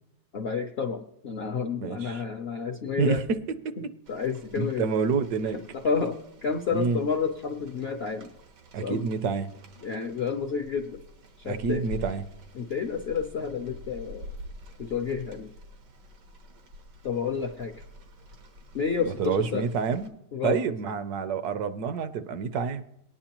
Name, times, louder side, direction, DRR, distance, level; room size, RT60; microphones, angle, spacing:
voice 1, 0.3-3.2 3.8-4.9 5.7-8.3 8.8-9.1 9.8-11.0 11.4-11.9 12.5-14.3 14.8-15.5 17.0-17.7 18.7-19.7 20.3-20.6, left 6 dB, 65° left, 5 dB, 0.6 m, -30 dB
voice 2, 1.8-2.2 3.0-3.4 3.6-3.7 4.6-5.6 6.7-7.0 8.7-9.5 11.4-12.3 19.2-20.1 20.4-22.8, right 5 dB, 75° right, 11 dB, 1.2 m, -28 dB
Rain, 4.1-20.1, left 1 dB, 90° right, 1.8 m, -47 dB
18.5 x 9.7 x 2.9 m, 0.79 s
omnidirectional pair, 1.8 m